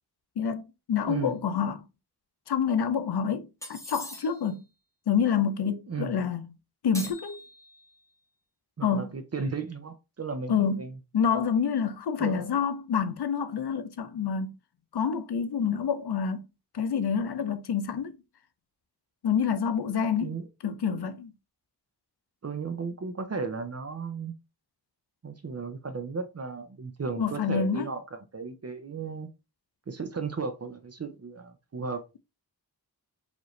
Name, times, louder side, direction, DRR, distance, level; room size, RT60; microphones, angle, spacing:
voice 1, 0.4-1.9 2.5-4.6 5.1-6.5 6.8-7.4 8.8-9.1 10.5-10.9 11.1-14.5 14.9-16.4 16.7-18.2 19.2-21.3 27.2-27.9, left 7 dB, 80° left, 0.6 m, -27 dB
voice 2, 1.1-1.4 5.9-6.2 8.8-11.0 12.2-12.5 20.2-20.5 22.4-24.3 25.2-29.3 29.9-32.0, right 4 dB, 40° right, 0.6 m, -35 dB
sound 1, 3.6-4.6 6.9-8.0, left 1 dB, 10° left, 1.1 m, -42 dB
5.0 x 2.6 x 3.1 m
wide cardioid pair, 100°, 39 cm